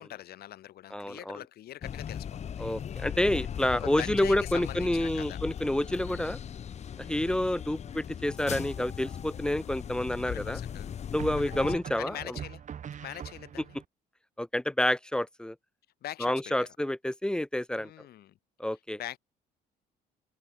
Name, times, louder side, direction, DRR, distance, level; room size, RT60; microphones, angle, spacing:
voice 1, 0.0-2.7 3.7-5.4 6.1-6.3 7.2-7.4 10.2-10.9 11.4-11.7 12.0-12.6 13.0-13.8 16.0-16.7 17.8-18.4 19.0-19.2, left 13 dB, 65° left, 4.3 m, -42 dB
voice 2, 0.9-1.4 2.6-6.4 7.0-10.6 11.1-12.3 14.4-15.6 16.2-17.9 18.6-19.0, left 1 dB, 5° left, 0.5 m, -29 dB
sound 1, 1.8-11.8, left 8 dB, 40° left, 1.1 m, -38 dB
sound 2, 8.5-9.1 11.2-13.9, right 8 dB, 45° right, 4.2 m, -42 dB
cardioid pair, 110°, 17 cm